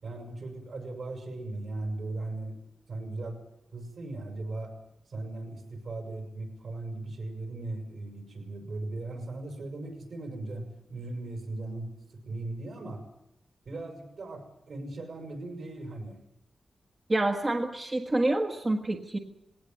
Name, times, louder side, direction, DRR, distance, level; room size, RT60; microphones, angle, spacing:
voice 1, 0.0-2.6 2.9-3.4 3.7-4.7 5.1-13.0 13.6-16.2, right 2 dB, 65° right, 4 dB, 6.6 m, -38 dB
voice 2, 17.1-19.2, right 2 dB, 25° right, 3 dB, 1.4 m, -27 dB
20.0 x 18.0 x 9.3 m, 0.83 s
wide cardioid pair, 130°, 0 cm